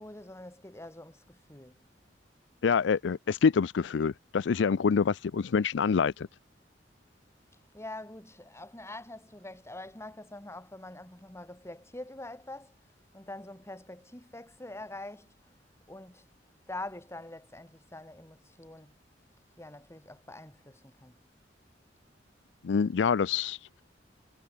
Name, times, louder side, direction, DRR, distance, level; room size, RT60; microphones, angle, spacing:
voice 1, 0.0-1.9 7.7-12.7 13.1-15.6 15.9-16.2 16.7-18.9 19.6-21.2, left 2 dB, 15° left, 3.1 m, -45 dB
voice 2, 2.6-6.3 22.6-23.6, left 6 dB, 80° left, 0.4 m, -26 dB
head